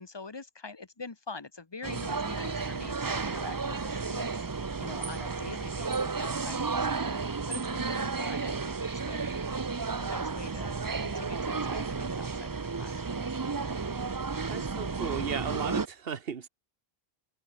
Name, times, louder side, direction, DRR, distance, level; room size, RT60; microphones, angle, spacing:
voice 1, 0.0-13.3, left 4 dB, 25° left, 1.1 m, -45 dB
sound 1, 1.8-15.9, right 4 dB, 25° right, 0.5 m, -32 dB
voice 2, 14.5-16.5, right 6 dB, 70° right, 1.4 m, -35 dB
omnidirectional pair, 1.0 m